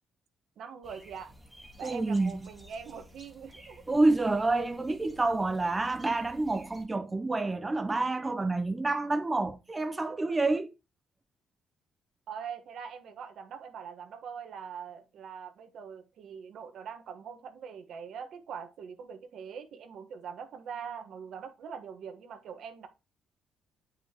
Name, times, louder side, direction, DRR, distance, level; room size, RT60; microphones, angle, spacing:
voice 1, 0.6-1.3 1.8-3.8 12.3-22.9, right 7 dB, 70° right, 1.2 m, -43 dB
sound 1, 0.8-6.9, equal, 5° right, 1.6 m, -53 dB
voice 2, 1.8-2.5 3.9-10.7, right 2 dB, 20° right, 0.6 m, -28 dB
8.4 x 5.5 x 2.9 m
cardioid pair, 90°, 0 cm